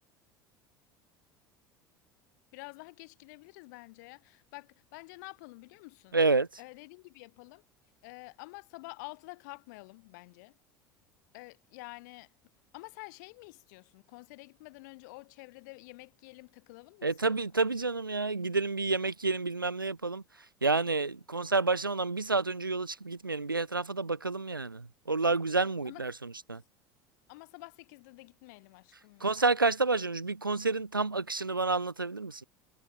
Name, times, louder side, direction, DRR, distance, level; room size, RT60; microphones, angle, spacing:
voice 1, 2.5-6.2 6.6-7.6 8.0-10.5 11.3-12.3 12.7-17.3 25.8-26.0 27.3-29.5, left 25 dB, 60° left, 3.2 m, -49 dB
voice 2, 6.1-6.5 17.0-20.2 20.6-26.6 29.2-32.4, right 3 dB, 85° right, 0.6 m, -29 dB
figure-of-eight pair, 70°, 11 cm